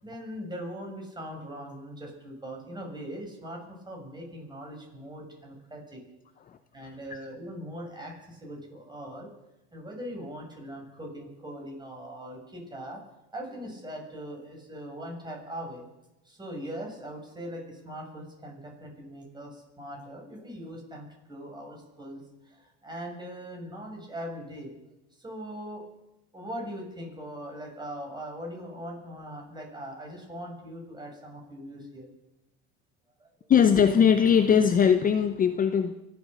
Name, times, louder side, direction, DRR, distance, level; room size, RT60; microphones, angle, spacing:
voice 1, 0.0-6.0 6.7-9.3 9.7-13.0 13.3-15.9 16.2-24.7 25.2-25.8 26.3-32.1 33.2-33.5, equal, 15° right, 1 dB, 6.5 m, -40 dB
voice 2, 33.5-35.9, left 7 dB, 25° left, 10 dB, 0.8 m, -20 dB
24.5 x 8.7 x 6.7 m, 0.93 s
supercardioid pair, 100°, 31 cm